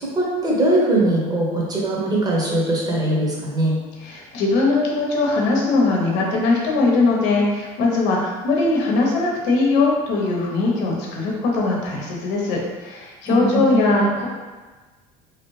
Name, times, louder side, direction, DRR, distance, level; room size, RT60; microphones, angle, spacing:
voice 1, 0.0-3.8 13.3-13.8, right 1 dB, 20° right, -4 dB, 1.0 m, -21 dB
voice 2, 4.0-14.3, left 3 dB, 70° left, -2 dB, 0.9 m, -20 dB
3.0 x 2.5 x 3.2 m, 1.3 s
supercardioid pair, 105°, 19 cm